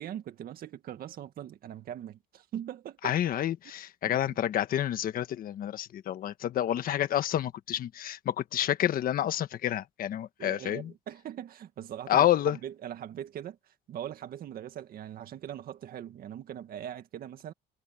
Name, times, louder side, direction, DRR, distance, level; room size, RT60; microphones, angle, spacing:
voice 1, 0.0-3.2 4.1-4.4 10.4-17.5, right 10 dB, 60° right, 1.9 m, -41 dB
voice 2, 3.0-10.9 12.1-12.6, left 11 dB, 60° left, 1.4 m, -29 dB
cardioid pair, 110°, 17 cm